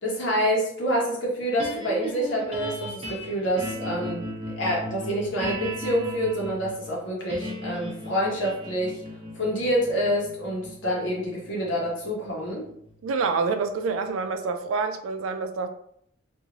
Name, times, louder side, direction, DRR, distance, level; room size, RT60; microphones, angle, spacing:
voice 1, 0.0-4.3 4.6-9.0 9.4-12.7, equal, 65° left, 1.0 m, -27 dB
sound 1, 1.6-13.9, equal, 30° right, 0.7 m, -37 dB
voice 2, 13.0-15.7, right 4 dB, 85° right, 0.4 m, -27 dB
2.6 x 2.6 x 2.9 m
head